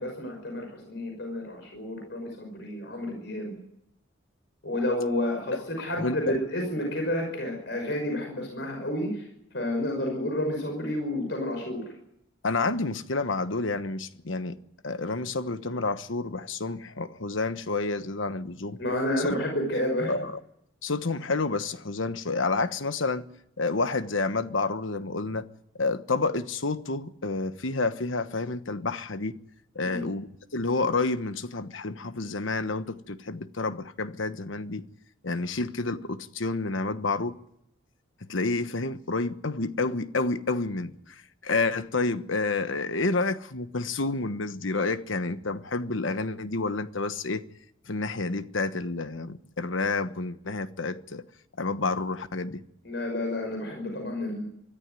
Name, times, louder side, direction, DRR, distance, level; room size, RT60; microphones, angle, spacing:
voice 1, 0.0-3.5 4.6-9.2 9.5-11.8 18.8-20.1 29.8-30.1 52.8-54.4, left 1 dB, 60° left, 5.8 m, -30 dB
voice 2, 6.0-6.4 12.4-14.6 14.8-18.8 19.2-19.3 20.1-20.4 20.8-23.2 23.6-25.5 25.8-29.4 29.7-30.3 30.5-34.8 35.2-37.4 38.3-47.4 47.9-51.2 51.6-52.6, left 3 dB, 85° left, 1.2 m, -29 dB
24.0 x 13.5 x 9.2 m
head